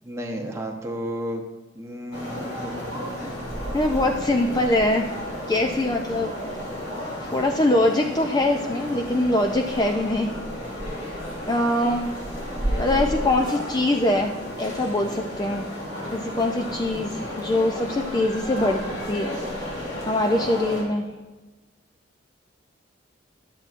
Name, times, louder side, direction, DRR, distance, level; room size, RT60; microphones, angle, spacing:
voice 1, 0.0-1.4 1.8-3.5, equal, 15° right, 2 dB, 0.8 m, -33 dB
sound 1, 2.1-20.8, equal, 70° left, 2.7 m, -32 dB
voice 2, 3.7-5.2 5.5-6.3 7.2-10.3 11.5-12.1 12.8-14.3 14.6-15.6 16.1-18.8 19.1-19.4 20.1-21.1, left 1 dB, 20° left, 3 dB, 0.4 m, -23 dB
12.0 x 7.4 x 2.5 m, 1.2 s
head